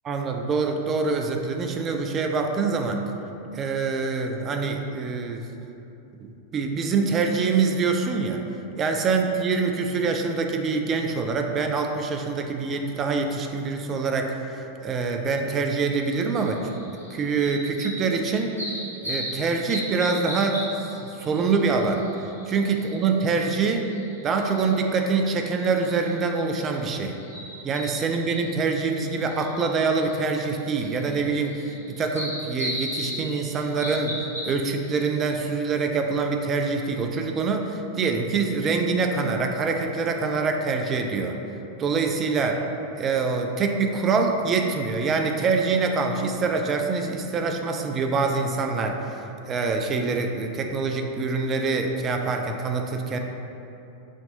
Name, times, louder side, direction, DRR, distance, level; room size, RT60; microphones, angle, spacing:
voice 1, 0.1-3.0 3.5-5.7 6.2-8.4 8.8-16.7 17.1-18.6 19.0-22.0 22.5-23.9 24.2-27.2 27.6-34.2 34.4-41.4 41.8-42.6 43.0-53.2, right 4 dB, 25° right, 4 dB, 0.3 m, -25 dB
sound 1, 15.9-35.5, equal, 85° right, 1.1 m, -38 dB
5.1 x 2.8 x 2.7 m, 2.9 s
figure-of-eight pair, 90°, 0 cm